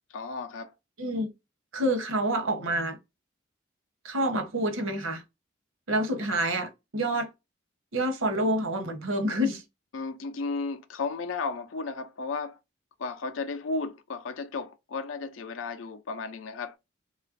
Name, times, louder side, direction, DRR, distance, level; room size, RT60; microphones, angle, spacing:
voice 1, 0.1-0.7 9.9-12.6 13.0-16.8, left 4 dB, 80° left, 0.4 m, -34 dB
voice 2, 1.0-1.3 1.7-3.0 4.0-5.2 5.9-7.3 7.9-9.6, right 1 dB, 85° right, 0.8 m, -28 dB
3.0 x 2.4 x 2.4 m
head